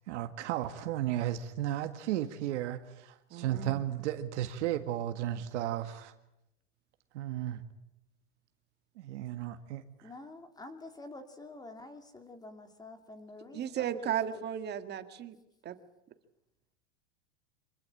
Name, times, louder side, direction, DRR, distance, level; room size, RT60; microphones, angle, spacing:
voice 1, 0.1-6.1 7.1-7.6 9.0-9.8, right 12 dB, 65° right, 8 dB, 1.9 m, -34 dB
voice 2, 3.3-3.8 13.5-15.4 15.6-15.8, right 9 dB, 25° right, 9 dB, 1.9 m, -35 dB
voice 3, 10.0-14.4, left 2 dB, 10° left, 7 dB, 3.0 m, -48 dB
26.0 x 22.0 x 8.7 m, 0.89 s
supercardioid pair, 140°, 38 cm